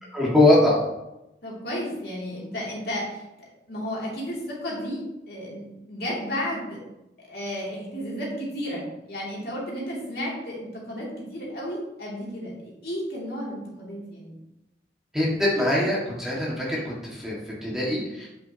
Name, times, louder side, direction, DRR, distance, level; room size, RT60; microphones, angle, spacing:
voice 1, 0.1-0.8 15.1-16.8 17.2-17.4 17.6-18.3, left 1 dB, ahead, -6 dB, 1.9 m, -21 dB
voice 2, 1.4-3.3 3.7-6.8 7.2-14.4, equal, 60° left, -4 dB, 2.8 m, -33 dB
8.3 x 7.7 x 2.9 m, 0.92 s
head